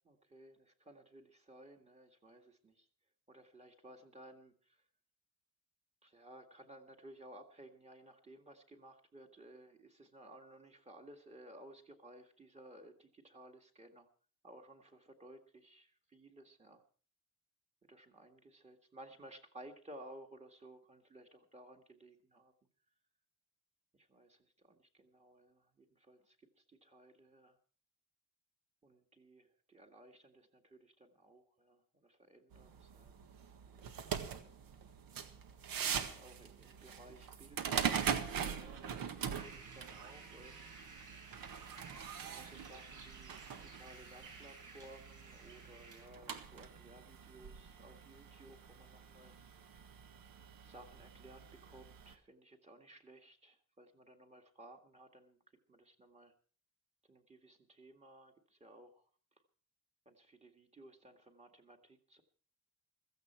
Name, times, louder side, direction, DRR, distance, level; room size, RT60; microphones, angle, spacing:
voice 1, 0.0-2.9 3.3-4.9 6.0-14.1 14.4-16.8 17.8-22.5 23.9-27.6 28.8-33.2 33.7-34.6 35.7-40.7 42.1-49.4 50.6-55.4 55.7-56.3 57.0-59.1 60.1-62.2, right 1 dB, 20° right, 3 dB, 1.8 m, -58 dB
sound 1, 32.5-52.1, right 7 dB, 80° right, 1.7 m, -43 dB
sound 2, 39.3-46.1, right 4 dB, 65° right, 6.4 m, -55 dB
16.0 x 14.5 x 4.5 m, 0.42 s
wide cardioid pair, 180°, 34 cm